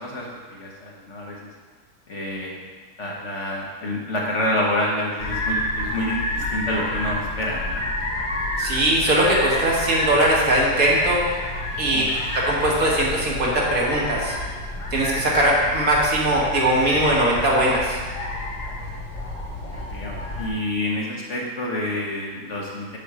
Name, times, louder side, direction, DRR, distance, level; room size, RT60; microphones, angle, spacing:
voice 1, 0.0-1.5 2.1-2.5 3.0-7.8 11.8-12.1 19.5-23.0, left 1 dB, 50° left, -3 dB, 1.3 m, -28 dB
sound 1, 5.2-20.5, left 1 dB, 75° left, 2.1 m, -29 dB
voice 2, 8.6-11.2 11.8-12.1 12.3-14.4 14.9-18.0, right 1 dB, 55° right, -4 dB, 1.8 m, -20 dB
7.3 x 6.2 x 4.9 m, 1.5 s
omnidirectional pair, 1.8 m